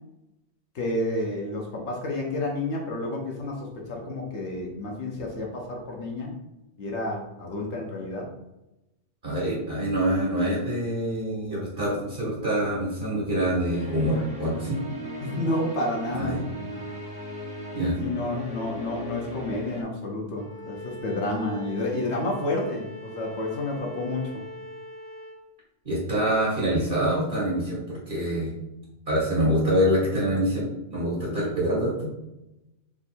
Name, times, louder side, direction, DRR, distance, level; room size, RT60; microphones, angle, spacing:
voice 1, 0.7-6.3 6.8-8.3 15.2-16.8 18.0-24.3, left 2 dB, 65° left, -1 dB, 1.0 m, -30 dB
voice 2, 9.2-14.8 16.1-16.4 17.7-18.0 25.8-28.5 29.1-30.6 30.9-32.1, equal, 50° right, -5 dB, 1.5 m, -25 dB
sound 1, 13.7-19.8, left 1 dB, 5° right, 0.7 m, -38 dB
Bowed string instrument, 20.3-25.4, right 1 dB, 65° right, 1.1 m, -41 dB
3.5 x 2.6 x 4.2 m, 0.94 s
omnidirectional pair, 1.3 m